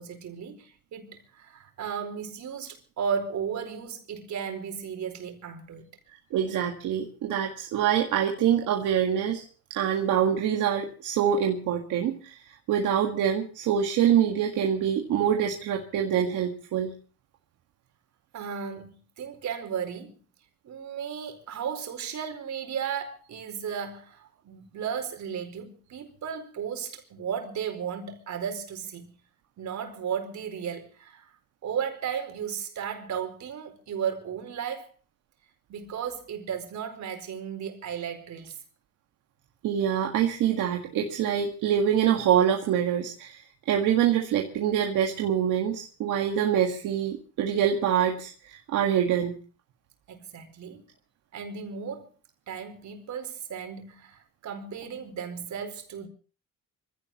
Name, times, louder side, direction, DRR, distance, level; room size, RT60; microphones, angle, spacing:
voice 1, 0.0-5.9 18.3-20.2 20.6-29.2 29.6-31.3 31.6-34.9 35.7-38.6 50.1-50.9 51.3-52.1 52.5-56.1, right 7 dB, 70° right, 4.5 m, -35 dB
voice 2, 6.3-9.4 9.7-16.9 39.6-49.4, right 9 dB, 85° right, 1.8 m, -25 dB
25.0 x 16.5 x 3.0 m
cardioid pair, 90°, 30 cm